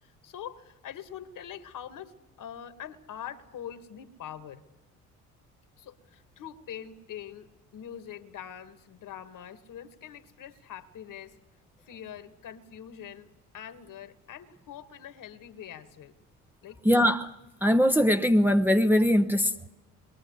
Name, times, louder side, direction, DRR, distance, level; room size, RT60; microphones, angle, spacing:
voice 1, 0.0-4.6 5.8-11.4 11.8-16.2 16.6-16.8, left 9 dB, 50° left, 1.9 m, -44 dB
voice 2, 16.8-17.3 17.6-19.7, equal, 5° right, 1.0 m, -22 dB
27.5 x 21.5 x 8.1 m
figure-of-eight pair, 55°, 42 cm